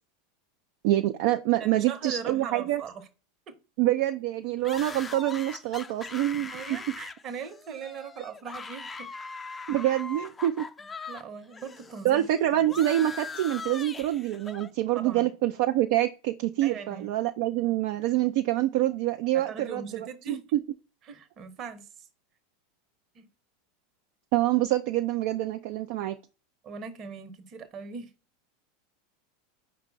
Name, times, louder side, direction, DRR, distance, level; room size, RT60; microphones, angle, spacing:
voice 1, 0.8-2.8 3.8-6.5 9.7-10.7 12.0-20.6 24.3-26.2, right 14 dB, 60° right, 0.3 m, -26 dB
voice 2, 1.6-3.0 3.5-3.6 6.1-9.1 11.1-12.3 12.5-12.7 14.9-15.3 16.6-17.1 19.3-20.4 21.1-22.1 23.1-23.3 26.6-28.1, right 6 dB, 40° right, 0.9 m, -40 dB
sound 1, 4.6-11.2 11.5-14.7, left 4 dB, 20° left, 0.4 m, -41 dB
5.0 x 2.2 x 4.6 m
hypercardioid pair, 90°, 0 cm